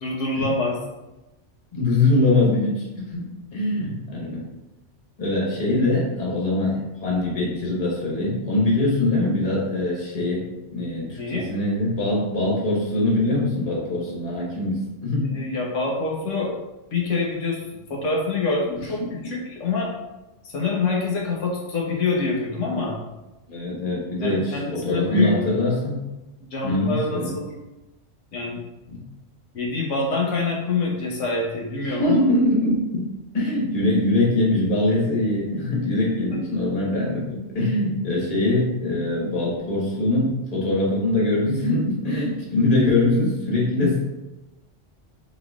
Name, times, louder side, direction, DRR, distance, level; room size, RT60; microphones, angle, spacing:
voice 1, 0.0-0.7 3.8-3.9 11.1-11.5 15.3-16.5 16.9-17.6 17.9-19.9 20.4-23.0 24.2-25.3 26.5-27.5 28.3-28.6 29.5-32.2 36.3-36.4 43.8-43.9, left 3 dB, 80° left, -3 dB, 1.3 m, -26 dB
voice 2, 1.7-4.4 5.2-10.4 10.7-15.3 23.5-25.9 26.6-27.3 28.9-29.0 31.8-33.0 33.3-44.0, left 2 dB, 35° left, -5 dB, 1.2 m, -23 dB
5.5 x 4.0 x 2.3 m, 1.0 s
omnidirectional pair, 1.2 m